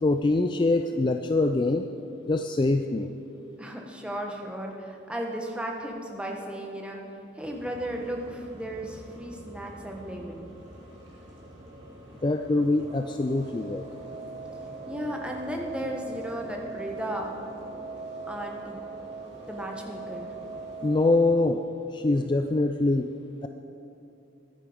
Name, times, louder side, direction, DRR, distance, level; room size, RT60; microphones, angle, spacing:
voice 1, 0.0-1.9 2.3-3.1 12.2-13.8 20.8-21.7 21.9-23.1, left 2 dB, 25° left, 7 dB, 0.3 m, -24 dB
voice 2, 3.6-7.0 7.3-10.5 14.9-17.3 18.3-18.8 19.5-20.3, right 1 dB, 5° right, 0 dB, 1.2 m, -35 dB
sound 1, 7.4-21.3, right 3 dB, 70° right, 2.6 m, -42 dB
14.5 x 11.0 x 5.0 m, 2.9 s
head